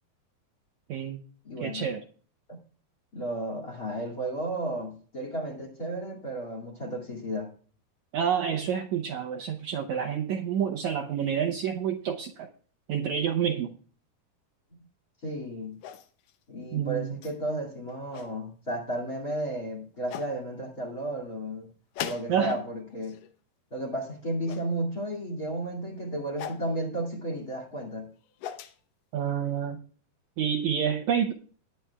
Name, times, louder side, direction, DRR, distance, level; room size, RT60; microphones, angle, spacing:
voice 1, 0.9-1.2 1.6-2.0 8.1-12.5 12.9-13.7 16.7-17.2 22.3-22.6 29.1-29.8 30.4-31.3, right 8 dB, 85° right, 4 dB, 1.6 m, -28 dB
voice 2, 1.4-1.9 2.5-2.6 3.1-7.5 15.2-15.8 16.5-21.7 22.0-23.1 23.7-28.1, right 1 dB, 30° left, 1 dB, 2.2 m, -33 dB
sound 1, 15.8-16.4 17.2-17.4 17.9-18.3 19.4-19.5 20.1-20.3 21.9-22.6 22.9-23.3 24.5-24.7 26.4-26.7 28.1-28.8, left 10 dB, 75° left, 2.2 m, -39 dB
19.0 x 9.8 x 2.3 m, 0.43 s
omnidirectional pair, 4.3 m